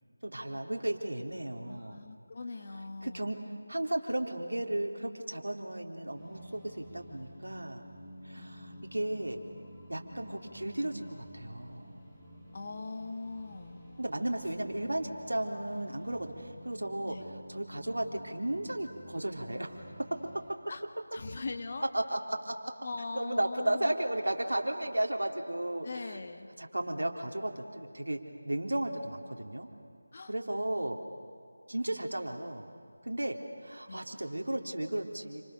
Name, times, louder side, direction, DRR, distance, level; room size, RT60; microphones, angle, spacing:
voice 1, 0.2-2.0 3.0-3.4 3.7-7.8 8.2-9.4 9.9-12.0 14.0-17.2 17.5-20.2 21.9-22.6 23.2-25.9 26.6-28.2 28.4-29.7 30.3-31.0 31.7-32.7 33.0-35.4, right 1 dB, 80° right, 2 dB, 3.7 m, -34 dB
voice 2, 1.6-3.4 8.4-9.0 12.5-13.8 17.0-17.3 20.7-20.8 21.1-21.9 22.8-24.0 25.8-26.5 30.1-30.3 31.9-32.2 33.9-34.1, left 3 dB, 40° left, 6 dB, 1.9 m, -41 dB
sound 1, 6.2-20.5, equal, ahead, 4.5 m, -50 dB
29.0 x 27.0 x 6.8 m, 2.3 s
figure-of-eight pair, 165°, 0 cm